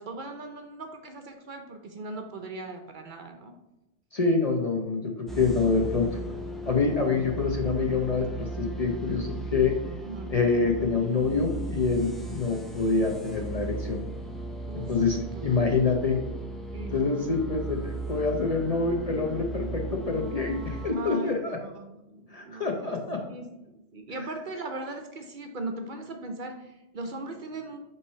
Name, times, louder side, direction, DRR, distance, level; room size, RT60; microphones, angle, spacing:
voice 1, 0.0-3.6 10.0-10.4 14.7-15.0 15.3-15.8 16.7-17.0 20.9-27.8, right 2 dB, 55° right, 4 dB, 0.7 m, -39 dB
voice 2, 4.1-6.1 6.6-9.7 10.3-14.0 14.7-16.2 16.9-21.6 22.3-23.2 24.1-24.2, left 4 dB, 40° left, 2 dB, 0.6 m, -26 dB
sound 1, 5.3-20.9, right 2 dB, ahead, 0.3 m, -36 dB
5.7 x 3.1 x 5.5 m, 0.94 s
omnidirectional pair, 1.1 m